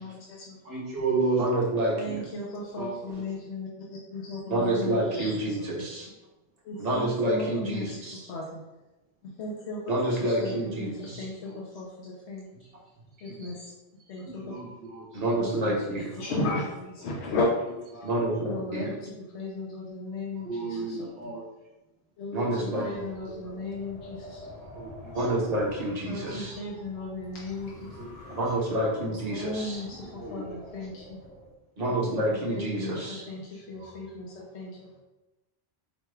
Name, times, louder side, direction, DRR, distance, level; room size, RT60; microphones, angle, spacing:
voice 1, 0.0-0.6 2.0-5.9 6.6-8.0 8.3-8.6 9.2-12.5 13.2-13.7 14.1-14.5 15.4-15.8 16.1-17.5 17.9-18.1 18.4-21.3 22.2-24.5 26.0-28.0 29.3-31.3 32.0-32.2 32.5-35.0, left 2 dB, 90° left, -3 dB, 0.9 m, -36 dB
voice 2, 0.6-1.4 2.8-2.9 11.0-11.2 11.4-11.6 13.2-13.6 14.2-15.2 17.9-18.2 20.4-21.4 23.4-23.5 24.6-25.2 26.1-26.4 27.9-28.4 30.1-30.6 33.8-34.0, right 4 dB, 70° right, -5 dB, 1.1 m, -33 dB
voice 3, 1.4-2.2 4.5-6.0 6.8-8.1 9.9-11.2 15.1-16.0 18.0-18.9 22.3-22.9 25.1-26.5 28.4-29.8 31.8-33.2, right 1 dB, 40° right, -4 dB, 1.0 m, -28 dB
Wind, 22.8-31.5, left 1 dB, 40° left, 0.8 m, -48 dB
5.1 x 2.2 x 3.3 m, 1.0 s
omnidirectional pair, 1.1 m